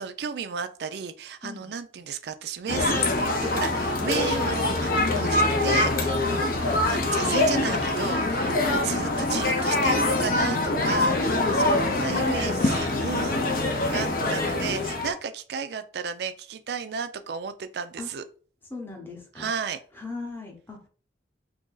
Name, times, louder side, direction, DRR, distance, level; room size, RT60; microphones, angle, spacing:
voice 1, 0.0-13.4 13.9-18.2 19.4-19.8, right 6 dB, 65° right, 10 dB, 0.4 m, -33 dB
sound 1, 2.7-15.1, left 2 dB, 50° left, 0.6 m, -24 dB
voice 2, 12.0-13.1 13.9-14.5 18.0-18.1 18.7-19.5 20.0-20.9, left 3 dB, 10° left, -1 dB, 0.8 m, -40 dB
2.7 x 2.5 x 3.8 m, 0.41 s
head